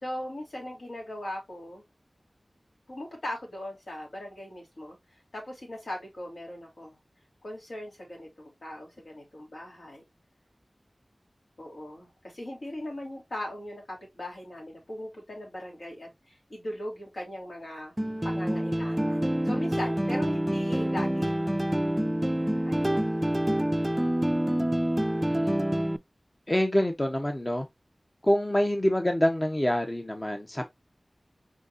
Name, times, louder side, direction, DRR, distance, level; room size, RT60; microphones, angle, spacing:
voice 1, 0.0-1.8 2.9-5.0 5.3-7.0 7.4-10.1 11.6-17.9 18.2-21.3 22.6-23.1, left 1 dB, 75° left, 3.0 m, -39 dB
sound 1, 18.0-26.0, right 1 dB, 15° right, 0.3 m, -27 dB
voice 2, 25.3-25.6 26.5-27.7 28.2-30.6, left 1 dB, 25° left, 0.7 m, -26 dB
4.8 x 4.0 x 2.5 m
wide cardioid pair, 65°, 0 cm